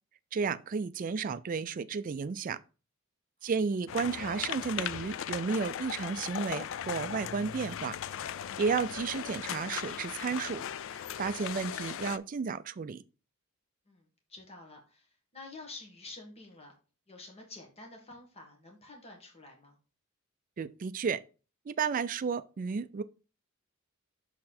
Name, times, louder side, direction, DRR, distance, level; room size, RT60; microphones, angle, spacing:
voice 1, 0.3-2.6 3.4-7.9 8.6-10.6 10.9-13.0 20.6-21.2 21.7-23.0, right 5 dB, 40° right, 0.3 m, -32 dB
sound 1, 3.9-12.2, left 9 dB, 60° left, 0.3 m, -38 dB
voice 2, 13.9-16.7 17.1-19.8, left 2 dB, 30° left, 1.6 m, -49 dB
6.4 x 4.1 x 4.2 m
head